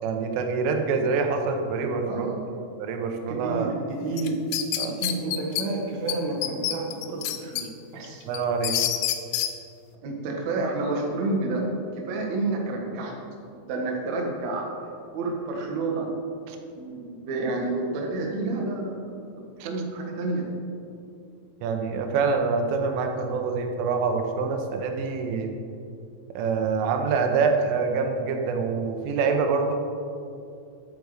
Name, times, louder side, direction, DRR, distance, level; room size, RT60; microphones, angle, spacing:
voice 1, 0.0-2.3 2.8-3.7 4.8-5.0 8.3-8.8 16.5-16.6 19.6-19.7 21.6-25.5 26.4-29.7, right 5 dB, 85° right, 4 dB, 3.5 m, -25 dB
voice 2, 2.1-2.6 3.3-3.7 4.0-4.4 4.9-8.3 10.0-11.7 12.0-13.1 13.7-14.7 15.1-16.1 16.7-19.0 19.6-20.4, right 3 dB, 70° right, 0 dB, 1.7 m, -29 dB
sound 1, 4.2-5.6 6.1-6.2 6.4-7.6 8.0-9.5, left 12 dB, 90° left, 2.5 m, -27 dB
11.0 x 8.1 x 4.9 m, 2.6 s
omnidirectional pair, 5.5 m